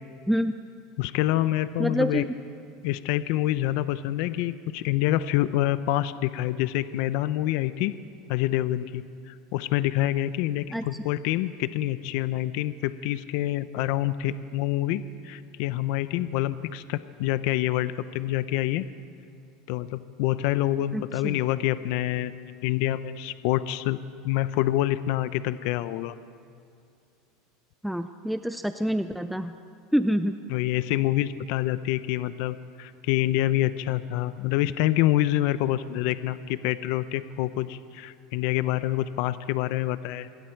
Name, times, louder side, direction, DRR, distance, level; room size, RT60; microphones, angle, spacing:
voice 1, 1.0-2.3 2.8-7.9 8.3-18.9 19.7-22.3 22.6-24.0 24.2-26.1 30.5-40.3, left 14 dB, 65° left, 14 dB, 0.6 m, -26 dB
voice 2, 1.8-2.3 10.7-11.0 20.9-21.4 27.8-29.6 29.9-30.3, equal, ahead, 9 dB, 0.5 m, -27 dB
27.0 x 21.5 x 4.6 m, 2.5 s
supercardioid pair, 135°, 0 cm